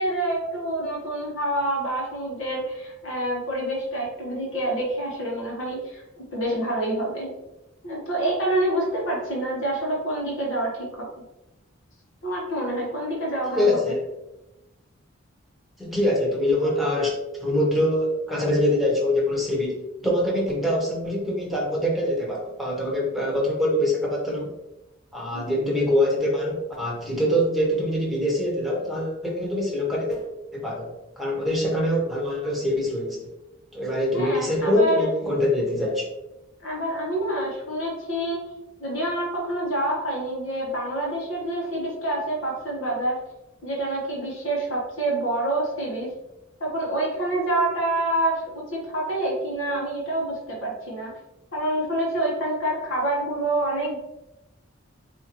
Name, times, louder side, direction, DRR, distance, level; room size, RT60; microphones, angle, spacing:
voice 1, 0.0-6.0 6.3-7.3 7.8-11.1 12.2-13.9 25.3-25.6 34.1-35.1 36.6-38.4 38.8-43.2 43.6-46.1 46.6-51.1 51.5-54.0, right 1 dB, 75° left, -3 dB, 1.2 m, -27 dB
voice 2, 13.5-14.0 15.8-17.1 17.4-24.5 25.1-30.3 30.5-33.3 33.7-36.1, left 1 dB, ahead, -4 dB, 1.0 m, -24 dB
4.4 x 2.7 x 3.0 m, 0.97 s
head